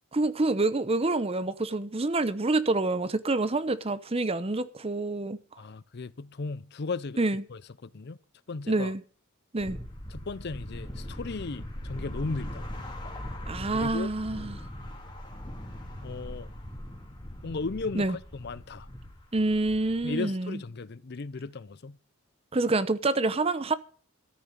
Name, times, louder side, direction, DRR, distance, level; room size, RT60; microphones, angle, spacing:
voice 1, 0.1-5.4 7.2-7.4 8.7-9.0 9.5-9.8 13.5-14.6 17.9-18.2 19.3-20.6 22.5-23.8, right 2 dB, 30° right, 0.7 m, -27 dB
voice 2, 5.6-7.2 7.5-8.2 8.5-8.9 10.1-12.7 13.7-14.1 16.0-16.5 17.4-18.9 20.0-22.0, left 3 dB, 50° left, 0.6 m, -36 dB
sound 1, 9.6-20.1, left 1 dB, 20° left, 3.2 m, -40 dB
14.0 x 6.8 x 9.0 m
head